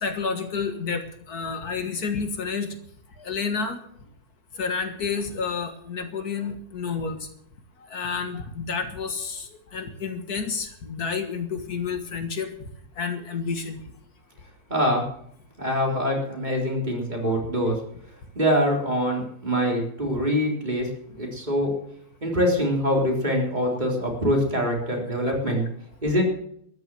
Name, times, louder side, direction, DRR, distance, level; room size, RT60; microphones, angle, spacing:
voice 1, 0.0-2.7 3.2-3.8 4.6-7.2 7.9-12.5 13.0-13.8 17.2-17.3 25.2-25.3, left 5 dB, 70° left, 7 dB, 2.1 m, -30 dB
voice 2, 14.7-15.0 15.6-17.8 18.4-20.9 21.2-21.7 22.2-25.6 26.0-26.2, equal, 25° right, 0 dB, 3.8 m, -24 dB
14.0 x 11.0 x 7.7 m, 0.68 s
omnidirectional pair, 1.7 m